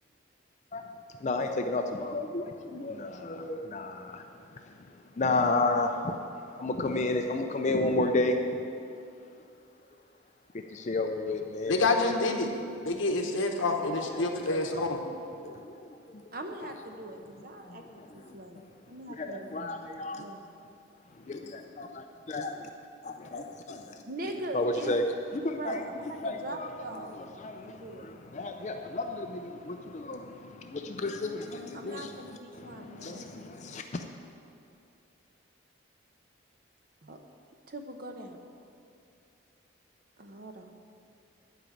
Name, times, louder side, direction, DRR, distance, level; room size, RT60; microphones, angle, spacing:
voice 1, 1.2-4.2 5.2-6.2 6.5-8.4 10.7-11.9 14.1-14.9 15.4-15.7 19.1-20.2 21.3-22.7 23.0-23.9 24.5-25.0 25.3-25.8 26.2-26.7 26.9-32.1 32.5-34.1, left 2 dB, 35° left, 4 dB, 0.4 m, -32 dB
voice 2, 11.7-12.5 12.8-15.0, left 3 dB, 80° left, 3 dB, 1.1 m, -27 dB
voice 3, 16.3-17.8 18.1-19.5 20.1-20.5 24.0-24.9 25.5-27.2 27.6-28.1 31.7-33.2 37.0-37.2 37.7-38.5 40.2-40.7, right 1 dB, 45° right, 4 dB, 0.8 m, -41 dB
10.5 x 5.1 x 8.4 m, 2.6 s
head